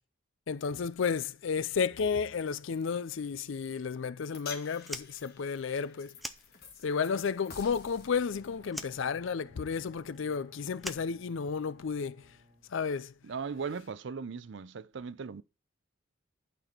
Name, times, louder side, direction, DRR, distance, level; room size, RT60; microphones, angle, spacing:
voice 1, 0.5-6.1 6.8-12.2 12.7-13.1, left 6 dB, 65° left, 0.4 m, -32 dB
sound 1, 4.3-10.7, left 5 dB, 45° left, 1.8 m, -51 dB
Fire, 4.8-7.1 7.3-8.3 8.7-11.9, equal, ahead, 0.4 m, -44 dB
Bowed string instrument, 7.9-13.3, equal, 35° right, 1.5 m, -60 dB
voice 2, 13.2-15.4, right 5 dB, 55° right, 0.5 m, -38 dB
11.5 x 4.2 x 4.4 m
head